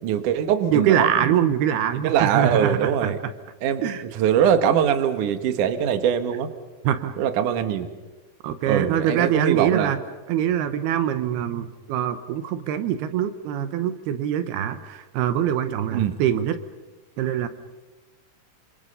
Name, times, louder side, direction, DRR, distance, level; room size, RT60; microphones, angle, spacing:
voice 1, 0.0-1.5 2.0-3.2 3.6-3.8 4.1-6.5 7.2-7.9 8.7-9.9 15.9-16.1, right 8 dB, 60° right, 8 dB, 2.6 m, -22 dB
voice 2, 0.7-3.2 3.8-4.0 6.8-7.2 8.4-10.0 10.3-16.6 17.2-17.5, right 10 dB, 80° right, 11 dB, 3.0 m, -23 dB
27.5 x 27.0 x 5.6 m, 1.2 s
omnidirectional pair, 4.5 m